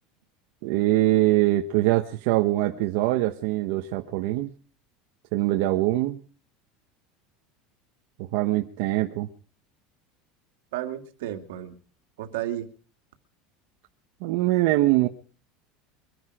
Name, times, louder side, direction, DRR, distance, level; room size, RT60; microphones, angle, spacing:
voice 1, 0.6-4.5 5.3-6.2 8.2-9.3 14.2-15.1, right 16 dB, 70° right, 1.2 m, -23 dB
voice 2, 10.7-11.7 12.2-12.7, right 12 dB, 85° right, 2.4 m, -32 dB
23.5 x 10.5 x 5.0 m
supercardioid pair, 140°, 0 cm